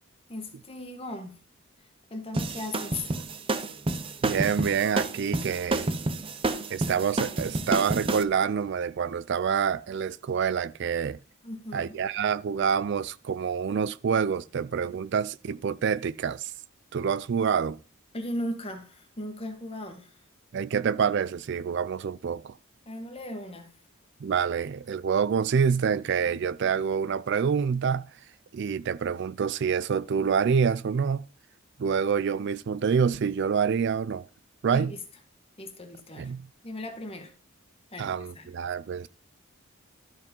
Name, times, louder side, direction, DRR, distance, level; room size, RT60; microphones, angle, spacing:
voice 1, 0.3-1.4 1.8-3.1 11.4-12.0 18.1-20.2 22.8-23.7 34.7-35.0 35.6-36.3 36.6-37.3 37.9-38.5, left 1 dB, 30° left, 1.6 m, -37 dB
sound 1, 2.3-8.2, right 2 dB, 25° right, 0.7 m, -29 dB
voice 2, 4.2-5.9 6.7-11.2 11.7-16.5 16.9-17.8 20.5-22.6 24.2-28.1 28.5-31.2 31.8-34.2 34.6-34.9 36.2-36.5 38.0-39.1, right 6 dB, 60° right, 0.4 m, -27 dB
12.5 x 4.8 x 5.3 m
head